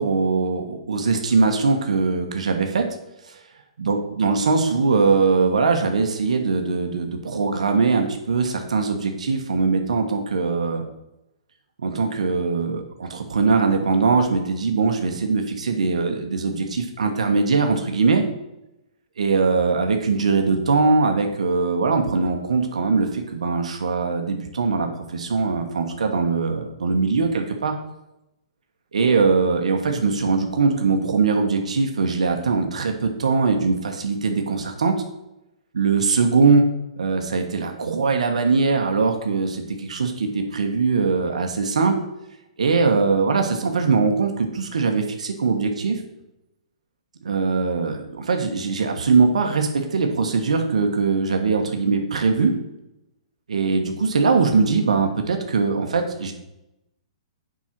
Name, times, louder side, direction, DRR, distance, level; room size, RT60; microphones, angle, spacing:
voice 1, 0.0-2.8 3.8-10.8 11.8-18.2 19.2-27.7 28.9-34.9 35.7-36.7 37.0-41.9 42.6-46.0 47.2-52.5 53.5-56.3, right 4 dB, 85° right, 4 dB, 1.4 m, -21 dB
7.4 x 5.4 x 6.1 m, 0.89 s
hypercardioid pair, 140°, 4 cm